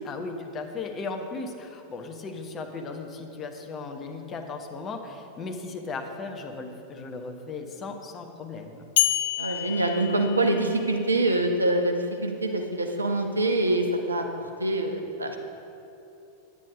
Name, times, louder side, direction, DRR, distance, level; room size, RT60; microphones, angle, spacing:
voice 1, 0.0-8.8, left 4 dB, 25° left, 4 dB, 1.1 m, -36 dB
sound 1, 9.0-11.0, left 14 dB, 55° left, 0.5 m, -28 dB
voice 2, 9.4-14.2 14.6-15.4, right 2 dB, 80° right, 3 dB, 0.9 m, -25 dB
9.7 x 9.7 x 5.0 m, 2.8 s
figure-of-eight pair, 90°, 0 cm